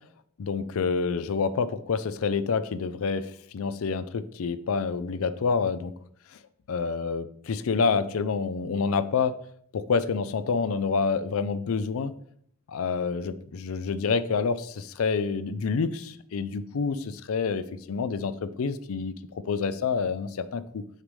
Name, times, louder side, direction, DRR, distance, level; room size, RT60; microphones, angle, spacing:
voice 1, 0.4-5.9 6.7-9.3 9.7-12.1 12.7-20.8, left 5 dB, 70° left, 13 dB, 0.4 m, -28 dB
6.4 x 5.3 x 3.2 m, 0.66 s
head